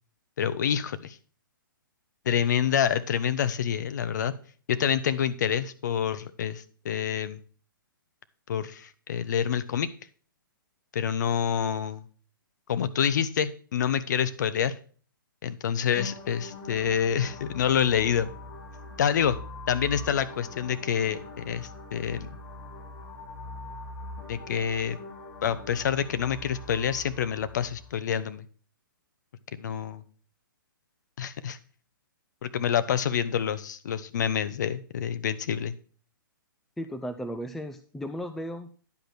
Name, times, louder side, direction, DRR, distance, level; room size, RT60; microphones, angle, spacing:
voice 1, 0.4-1.2 2.3-4.3 4.7-7.4 8.5-9.9 10.9-12.0 12.7-14.7 15.4-18.3 19.0-19.4 19.7-22.3 24.3-25.0 25.4-28.5 29.6-30.0 31.2-31.6 32.4-35.7, left 8 dB, 55° left, 14 dB, 0.8 m, -27 dB
sound 1, 15.9-27.9, left 2 dB, 35° left, 2.4 m, -42 dB
voice 2, 36.8-38.7, equal, 5° left, 8 dB, 0.4 m, -35 dB
10.5 x 5.1 x 6.0 m, 0.42 s
figure-of-eight pair, 125°, 12 cm